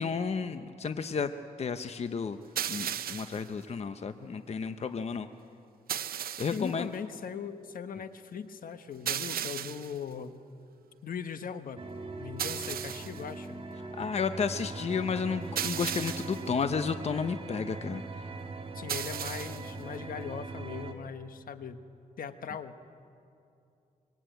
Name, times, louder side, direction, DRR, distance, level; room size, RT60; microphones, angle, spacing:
voice 1, 0.0-1.3 1.6-2.4 2.7-5.3 6.4-6.9 14.0-18.3, left 5 dB, 45° left, 9 dB, 0.9 m, -32 dB
sound 1, 2.6-3.5 5.9-6.7 9.1-10.0 12.4-13.2 15.6-16.5 18.9-19.7, right 9 dB, 85° right, 0.8 m, -35 dB
voice 2, 6.5-10.4 11.0-11.9 12.2-13.6 18.7-21.8 22.2-22.8, left 7 dB, 70° left, 10 dB, 1.3 m, -39 dB
sound 2, 11.8-20.9, right 3 dB, 40° right, 2.3 m, -41 dB
25.0 x 23.5 x 9.2 m, 2.6 s
wide cardioid pair, 105°, 15 cm